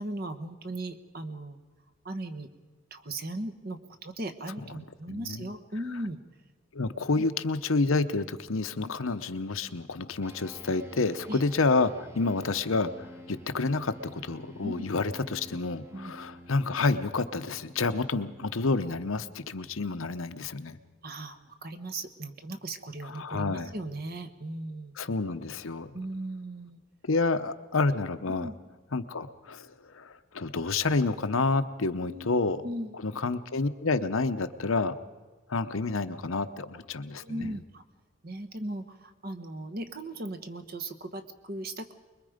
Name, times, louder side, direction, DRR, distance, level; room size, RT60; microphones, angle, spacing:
voice 1, 0.0-1.6 2.0-2.5 2.9-6.2 7.2-7.3 8.8-8.9 11.3-11.4 14.6-14.8 15.9-16.1 21.0-24.9 25.9-26.8 28.3-28.6 32.0-32.9 37.2-37.8 38.2-41.9, right 1 dB, 45° right, 9 dB, 1.3 m, -38 dB
voice 2, 5.1-5.5 6.7-20.8 23.2-23.7 25.0-25.9 27.1-28.5 28.9-29.7 29.9-32.6 33.0-34.9 35.5-37.5, left 3 dB, 75° left, 10 dB, 0.9 m, -29 dB
sound 1, 10.2-19.9, equal, 10° right, 1.0 m, -50 dB
24.5 x 22.0 x 5.1 m, 1.3 s
head